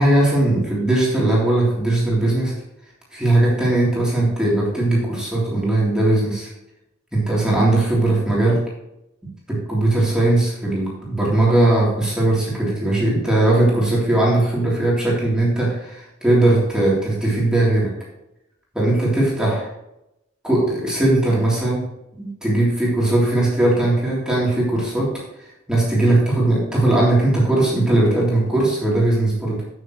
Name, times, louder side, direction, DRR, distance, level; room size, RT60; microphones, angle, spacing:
voice 1, 0.0-2.5 3.1-6.5 7.1-8.6 9.5-17.9 18.7-19.7 20.4-21.8 22.2-25.1 25.4-29.6, right 2 dB, 5° right, -6 dB, 3.4 m, -19 dB
9.3 x 9.1 x 3.2 m, 0.86 s
head